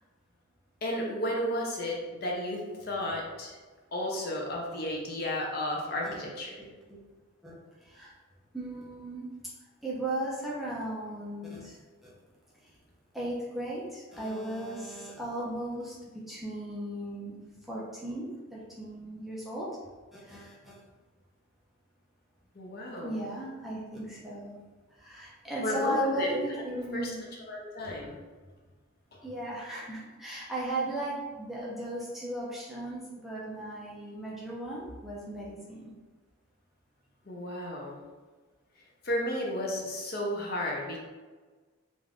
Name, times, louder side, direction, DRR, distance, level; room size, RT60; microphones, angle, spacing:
voice 1, 0.8-3.5 3.9-6.5 22.6-23.2 25.6-27.1 27.4-28.2 29.1-29.2 37.3-38.0 39.0-41.0, left 1 dB, 45° left, -2 dB, 0.6 m, -33 dB
voice 2, 7.8-8.1 8.5-9.3 9.8-11.8 12.0-12.1 13.1-17.4 17.7-19.7 20.1-20.8 23.0-24.6 25.0-27.2 29.2-35.9, right 1 dB, ahead, -7 dB, 0.6 m, -36 dB
3.4 x 2.6 x 3.6 m, 1.3 s
head